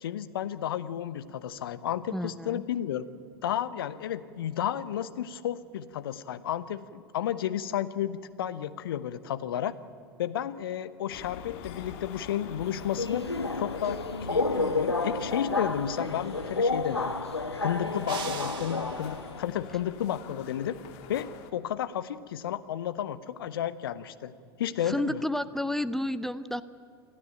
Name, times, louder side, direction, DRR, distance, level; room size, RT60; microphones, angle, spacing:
voice 1, 0.0-3.1 3.4-9.7 10.2-13.3 13.6-14.0 14.3-17.1 17.6-20.8 21.1-24.3 24.6-25.2, left 10 dB, 60° left, 14 dB, 0.9 m, -32 dB
voice 2, 2.1-2.6 24.9-26.6, left 1 dB, 5° left, 13 dB, 0.5 m, -31 dB
sound 1, 11.1-21.5, left 8 dB, 45° left, 1.7 m, -45 dB
Subway metro underground, 12.6-19.4, left 3 dB, 85° left, 1.0 m, -30 dB
sound 2, 18.1-19.3, right 8 dB, 35° right, 2.1 m, -41 dB
28.5 x 12.5 x 9.2 m, 2.2 s
figure-of-eight pair, 85°, 13 cm